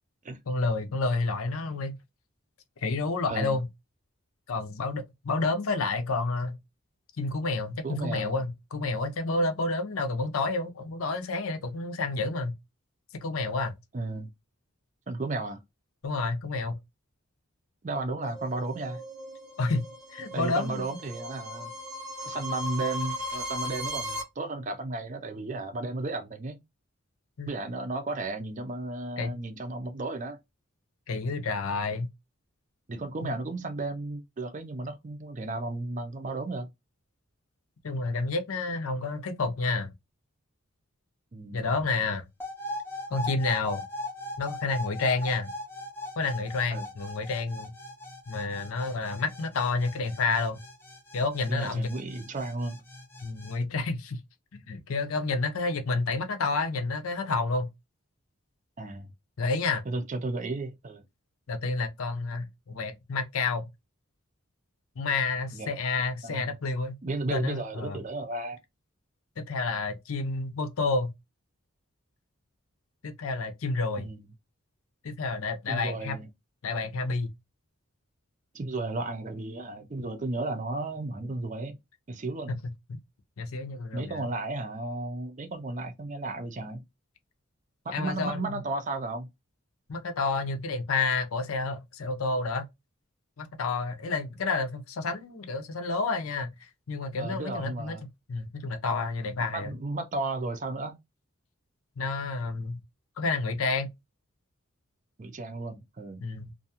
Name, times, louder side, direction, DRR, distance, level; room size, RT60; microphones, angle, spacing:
voice 1, 0.5-2.0 2.8-3.7 4.5-6.6 7.2-12.5 13.2-13.7 16.0-16.8 19.6-19.9 20.1-21.0 27.4-27.5 29.2-29.3 31.1-32.1 33.2-33.3 37.8-39.9 41.5-42.2 43.1-43.8 44.4-45.5 46.2-47.7 48.3-50.6 51.1-51.9 53.2-54.2 54.5-57.7 59.4-59.8 61.5-63.6 65.0-67.0 67.3-68.0 69.4-71.1 73.0-74.0 75.0-76.2 76.6-77.3 82.5-82.6 82.9-83.0 83.4-84.3 87.9-88.6 89.9-92.7 93.4-98.0 98.3-99.7 102.0-102.8 103.2-103.9 106.2-106.5, left 3 dB, 85° left, 0.6 m, -29 dB
voice 2, 7.8-8.4 13.9-14.3 15.1-15.6 17.8-19.0 20.3-21.7 22.3-26.6 27.5-30.4 32.9-36.7 41.3-41.7 46.7-46.9 51.5-52.8 58.8-59.1 59.9-61.0 65.5-65.7 66.2-66.6 67.0-68.6 74.0-74.3 75.7-76.3 78.5-81.8 82.1-82.5 83.9-86.8 87.8-89.3 97.2-98.0 99.5-101.0 105.2-106.2, right 2 dB, 35° right, 0.5 m, -34 dB
sound 1, 18.2-24.2, equal, 85° right, 0.7 m, -37 dB
sound 2, 42.4-53.6, left 1 dB, 10° left, 0.6 m, -40 dB
2.5 x 2.3 x 2.7 m
head